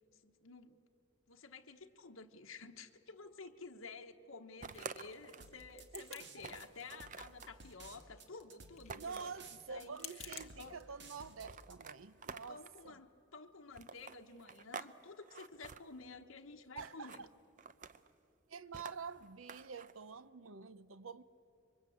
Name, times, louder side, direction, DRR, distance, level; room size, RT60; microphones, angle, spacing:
voice 1, 0.2-0.8 1.3-9.3 9.7-10.8 12.5-17.2, left 4 dB, 75° left, 1.1 m, -52 dB
sound 1, 4.6-5.6 6.0-6.1 6.4-7.5 8.9-9.4 10.0-10.7 11.4-12.8 13.7-14.9 15.2-15.8 16.8-17.2 17.6-18.1 18.7-19.9, right 5 dB, 40° right, 0.6 m, -49 dB
sound 2, 4.7-6.2 6.5-7.2 7.5-10.5, left 9 dB, 30° left, 1.6 m, -52 dB
sound 3, 5.4-11.8, right 3 dB, 55° right, 2.0 m, -56 dB
voice 2, 5.9-6.3 8.9-13.0 16.8-17.3 18.5-21.2, right 5 dB, 80° right, 0.7 m, -48 dB
27.0 x 23.5 x 8.6 m
head